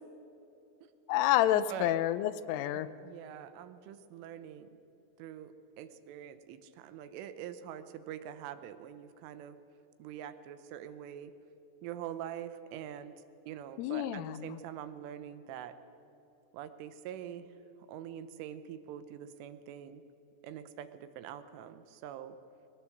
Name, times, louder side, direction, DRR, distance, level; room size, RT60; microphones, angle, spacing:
voice 1, 1.1-2.9 13.8-14.6, left 13 dB, 85° left, 14 dB, 3.3 m, -29 dB
voice 2, 3.0-4.7 5.2-9.6 10.0-11.3 11.8-13.1 13.5-15.8 16.5-17.5 17.9-20.0 20.4-22.4, right 10 dB, 80° right, 11 dB, 3.4 m, -44 dB
21.5 x 18.0 x 7.8 m, 2.9 s
omnidirectional pair, 5.6 m